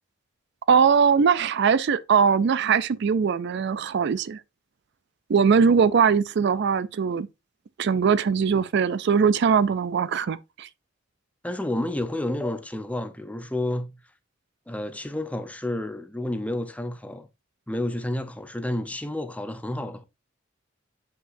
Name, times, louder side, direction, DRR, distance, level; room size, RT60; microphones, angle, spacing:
voice 1, 0.7-4.4 5.3-7.3 7.8-10.7, right 6 dB, 60° right, 0.4 m, -21 dB
voice 2, 11.4-14.0 14.7-17.3 17.7-20.0, left 1 dB, 5° left, 0.6 m, -30 dB
7.6 x 5.6 x 2.6 m
head